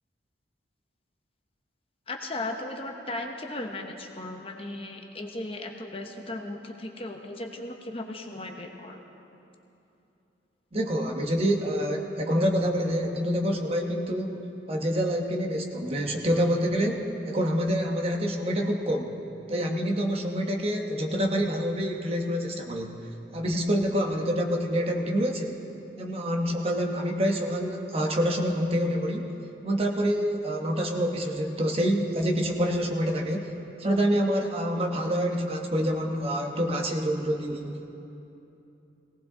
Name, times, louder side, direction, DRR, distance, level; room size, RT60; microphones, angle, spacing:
voice 1, 2.1-9.0, left 2 dB, 30° left, 3 dB, 0.9 m, -36 dB
voice 2, 10.7-14.4 14.7-19.1 19.5-22.9 23.3-25.6 26.0-29.3 29.6-33.5 33.8-37.9, equal, 30° right, 2 dB, 1.0 m, -27 dB
19.0 x 18.0 x 3.8 m, 2.9 s
head